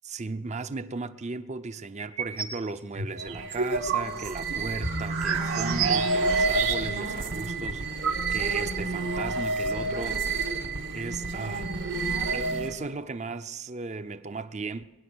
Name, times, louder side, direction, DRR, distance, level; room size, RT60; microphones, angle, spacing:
voice 1, 0.1-10.2 10.9-11.7 12.3-14.8, right 3 dB, 35° right, 0.6 m, -36 dB
sound 1, 2.0-2.6 3.0-7.1 7.4-7.5 7.7-8.6, right 5 dB, 85° right, 2.1 m, -30 dB
sound 2, 3.1-12.9, right 3 dB, 60° right, 1.2 m, -30 dB
22.0 x 10.5 x 6.3 m
head